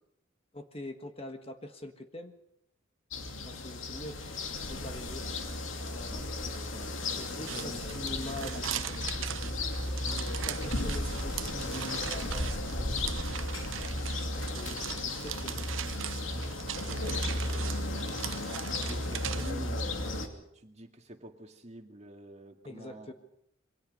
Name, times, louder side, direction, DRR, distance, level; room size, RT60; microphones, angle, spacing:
voice 1, 0.5-2.4 3.4-5.2 5.8-6.3 7.2-9.1 10.3-13.2 14.4-15.7 22.6-23.1, left 1 dB, 30° left, 6 dB, 1.5 m, -44 dB
sound 1, 3.1-20.3, left 2 dB, 75° left, 2.7 m, -35 dB
sound 2, 7.4-19.5, right 9 dB, 75° right, 0.8 m, -40 dB
voice 2, 16.8-18.2 18.8-23.1, right 1 dB, 35° right, 4 dB, 2.2 m, -48 dB
27.0 x 23.0 x 5.3 m, 0.76 s
head